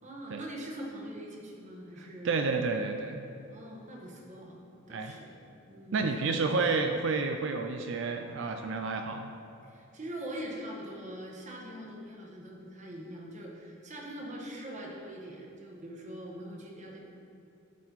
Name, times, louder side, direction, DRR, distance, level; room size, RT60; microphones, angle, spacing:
voice 1, 0.0-2.3 3.5-4.6 4.9-5.4 5.7-6.0 9.6-17.0, right 1 dB, 35° right, -2 dB, 1.3 m, -42 dB
voice 2, 2.0-3.2 4.9-5.1 5.9-9.3, right 4 dB, 65° right, 5 dB, 0.4 m, -30 dB
11.5 x 4.3 x 4.0 m, 2.6 s
head